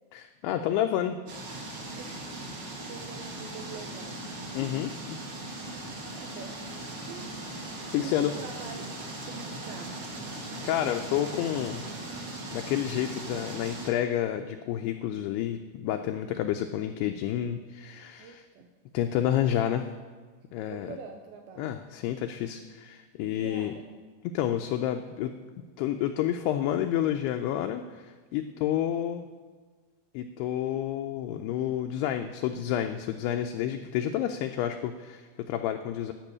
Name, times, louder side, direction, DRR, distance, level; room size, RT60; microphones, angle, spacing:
voice 1, 0.1-1.2 4.5-5.2 7.9-8.3 10.6-11.8 12.5-18.4 18.9-19.9 20.5-21.0 21.6-23.7 24.3-25.3 25.8-29.3 30.1-36.1, left 11 dB, 85° left, 6 dB, 2.4 m, -29 dB
sound 1, 1.3-13.9, right 2 dB, 50° right, 1.7 m, -39 dB
voice 2, 2.0-2.3 2.9-4.2 5.4-7.4 8.0-8.9 9.3-9.9 18.2-18.7 20.7-21.7 23.2-23.9 28.4-28.7, right 6 dB, 85° right, 4 dB, 2.2 m, -45 dB
12.0 x 6.1 x 8.4 m, 1.4 s
omnidirectional pair, 5.1 m